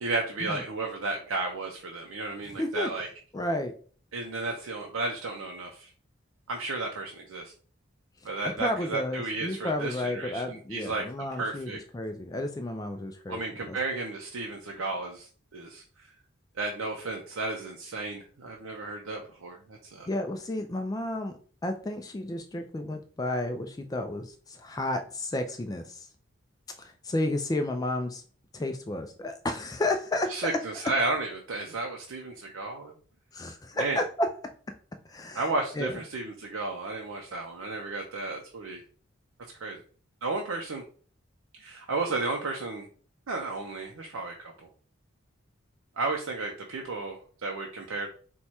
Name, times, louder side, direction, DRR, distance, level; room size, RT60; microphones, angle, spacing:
voice 1, 0.0-3.1 4.1-5.9 6.5-7.5 8.2-11.0 11.3-11.8 13.3-16.1 16.6-20.1 30.3-32.9 33.7-34.0 35.3-38.8 39.6-39.8 40.2-40.8 41.6-42.9 43.3-44.7 46.0-48.1, right 3 dB, 85° right, 1 dB, 0.6 m, -33 dB
voice 2, 2.6-2.9 3.3-3.7 8.4-13.4 13.7-13.8 20.1-26.1 26.8-28.2 28.5-30.5 33.3-34.3 35.1-35.5 35.8-36.0, left 1 dB, 20° left, 6 dB, 0.3 m, -32 dB
4.5 x 2.3 x 4.2 m, 0.43 s
head